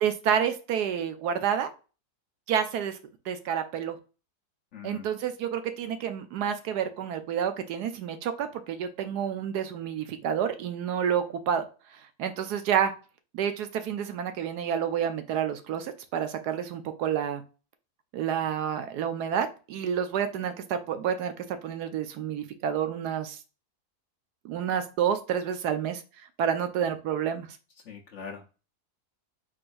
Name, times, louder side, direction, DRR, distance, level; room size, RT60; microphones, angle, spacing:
voice 1, 0.0-1.7 2.5-3.0 3.2-4.0 4.8-11.7 12.2-12.9 13.3-17.4 18.1-23.4 24.4-27.5, right 8 dB, 75° right, 1.2 m, -29 dB
voice 2, 4.7-5.0 27.9-28.5, left 6 dB, 55° left, 0.8 m, -42 dB
4.7 x 3.9 x 2.5 m
omnidirectional pair, 1.7 m